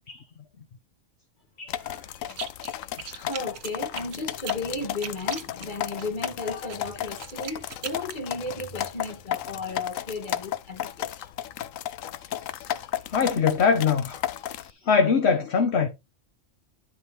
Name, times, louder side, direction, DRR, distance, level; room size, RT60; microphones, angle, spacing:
sound 1, 1.7-14.7, left 11 dB, 90° left, 1.1 m, -34 dB
voice 1, 1.8-2.2 3.0-11.3, left 2 dB, 40° left, 1.9 m, -35 dB
sound 2, 2.3-2.7 3.0-6.3 6.7-8.2, right 8 dB, 75° right, 1.3 m, -39 dB
voice 2, 13.1-14.2 14.9-15.9, left 5 dB, 55° left, 1.2 m, -22 dB
11.5 x 5.3 x 3.3 m
omnidirectional pair, 1.3 m